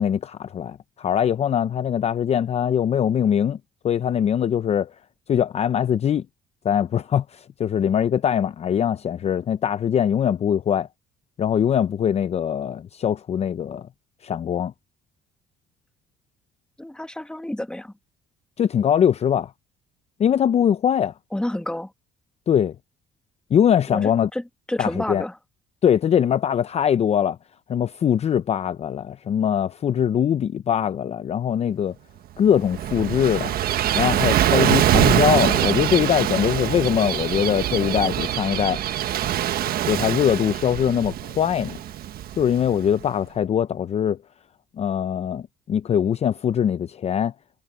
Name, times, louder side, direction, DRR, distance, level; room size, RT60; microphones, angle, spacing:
voice 1, 0.0-3.6 3.8-4.9 5.3-6.2 6.6-10.9 11.4-13.9 14.2-14.7 18.6-19.5 20.2-21.1 22.5-22.7 23.5-24.3 24.8-25.2 25.8-27.4 27.7-31.9 32.4-33.5 33.9-38.8 39.9-41.8 42.4-44.2 44.8-47.3, left 9 dB, 40° left, 0.6 m, -22 dB
voice 2, 16.8-17.9 21.3-21.9 23.9-25.4, left 1 dB, 5° left, 1.6 m, -29 dB
Gull seagull / Waves surf, 32.4-43.0, right 12 dB, 65° right, 1.4 m, -23 dB
cardioid pair, 110°, 17 cm